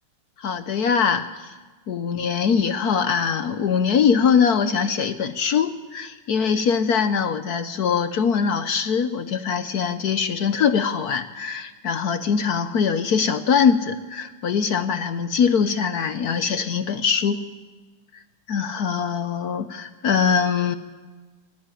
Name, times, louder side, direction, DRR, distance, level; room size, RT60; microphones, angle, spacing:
voice 1, 0.4-1.5 1.9-17.4 18.5-20.8, left 6 dB, 60° left, 11 dB, 1.0 m, -22 dB
24.0 x 14.5 x 9.2 m, 1.3 s
omnidirectional pair, 2.4 m